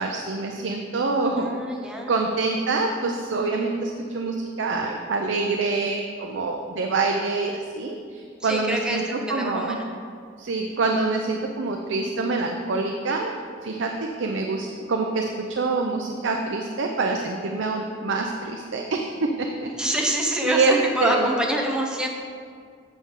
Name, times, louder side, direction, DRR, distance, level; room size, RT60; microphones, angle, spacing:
voice 1, 0.0-1.8 2.1-9.0 9.3-9.8 10.4-13.3 13.6-13.9 14.2-20.1 20.4-21.3, right 3 dB, 70° right, 2 dB, 0.5 m, -26 dB
voice 2, 1.4-2.2 8.4-9.9 19.8-22.1, equal, 5° right, 0 dB, 0.7 m, -26 dB
8.5 x 6.4 x 3.7 m, 2.1 s
head